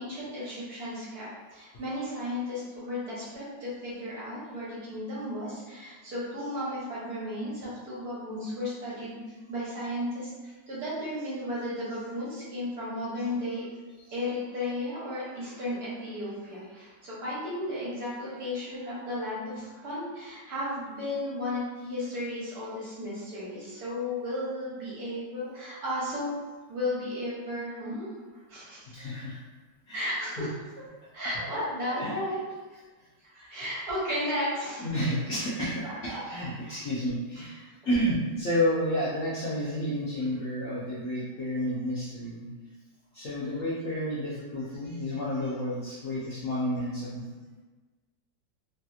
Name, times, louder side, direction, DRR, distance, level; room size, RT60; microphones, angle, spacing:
voice 1, 0.0-13.6 14.1-26.3 26.7-28.1 28.5-28.8 29.9-30.5 31.1-32.4 32.7-32.8 33.2-34.9 35.8-36.2 36.6-36.8 37.4-37.5, left 1 dB, 60° right, -9 dB, 1.6 m, -34 dB
voice 2, 28.9-29.4 29.9-30.0 30.4-30.5 31.8-32.1 34.8-42.5 43.1-47.3, equal, 65° left, -8 dB, 0.8 m, -31 dB
3.2 x 2.7 x 2.3 m, 1.3 s
omnidirectional pair, 2.0 m